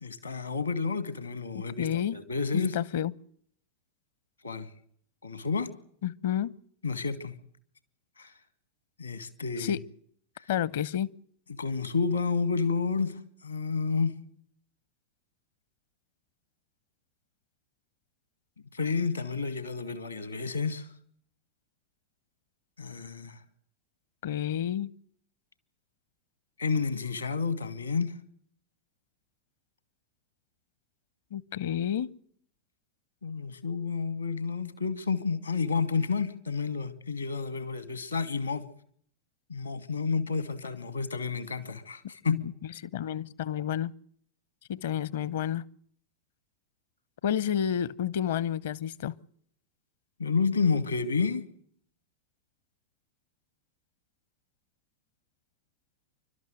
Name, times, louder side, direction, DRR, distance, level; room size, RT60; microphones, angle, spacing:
voice 1, 0.0-2.8 4.4-4.7 5.2-5.7 6.8-7.4 8.2-8.3 9.0-9.8 10.4-10.5 11.6-14.2 18.7-20.9 22.8-23.4 26.6-28.1 33.2-38.6 39.5-42.4 50.2-51.4, left 5 dB, 80° left, 2.1 m, -30 dB
voice 2, 1.5-2.2 2.5-3.1 6.0-6.5 9.6-9.8 10.5-11.1 24.2-24.9 31.3-32.1 42.3-42.5 42.8-43.9 44.7-45.6 47.2-49.1, left 10 dB, 55° left, 0.8 m, -30 dB
29.0 x 13.0 x 7.7 m
figure-of-eight pair, 90°, 0 cm